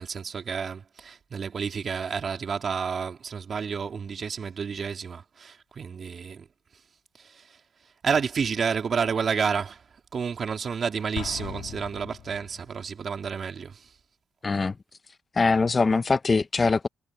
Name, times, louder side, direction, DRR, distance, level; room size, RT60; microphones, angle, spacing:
voice 1, 0.0-6.5 7.2-7.5 8.0-9.8 10.1-13.9, right 6 dB, 45° right, 3.7 m, -30 dB
Explosion, 11.1-12.7, left 13 dB, 85° left, 4.2 m, -39 dB
voice 2, 14.4-14.7 15.4-16.9, left 4 dB, 30° left, 0.8 m, -22 dB
cardioid pair, 90°, 0 cm